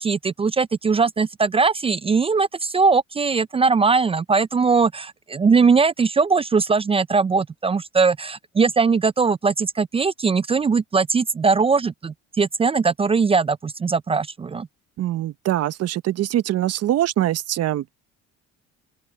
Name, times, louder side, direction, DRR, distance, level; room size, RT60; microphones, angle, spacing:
voice 1, 0.0-14.7, right 4 dB, 20° right, 0.4 m, -20 dB
voice 2, 15.0-17.9, right 13 dB, 60° right, 1.0 m, -23 dB
open air
cardioid pair, 95°, 29 cm